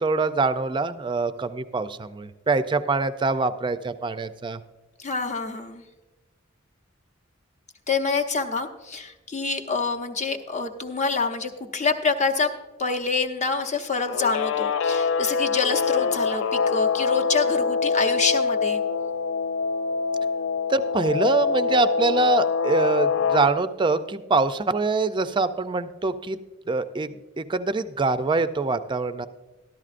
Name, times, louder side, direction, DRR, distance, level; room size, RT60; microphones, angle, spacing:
voice 1, 0.0-4.6 20.7-26.4 26.7-27.1 27.4-29.3, right 3 dB, 25° right, 11 dB, 0.4 m, -24 dB
voice 2, 5.0-5.8 7.9-12.5 12.8-18.8, left 4 dB, 35° left, 5 dB, 0.8 m, -26 dB
Guitar, 14.1-23.5, left 5 dB, 65° left, 0.3 m, -24 dB
13.5 x 12.0 x 2.5 m, 1.2 s
head